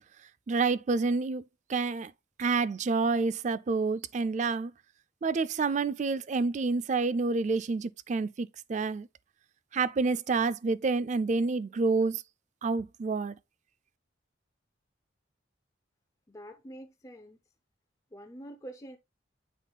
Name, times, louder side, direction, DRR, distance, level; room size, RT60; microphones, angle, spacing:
voice 1, 0.5-1.4 1.7-2.1 2.4-4.7 5.2-9.1 9.7-12.2 12.6-13.4, right 4 dB, 35° right, 0.3 m, -28 dB
voice 2, 16.3-17.4 18.1-19.0, right 1 dB, 15° left, 0.6 m, -46 dB
8.2 x 5.3 x 2.3 m
head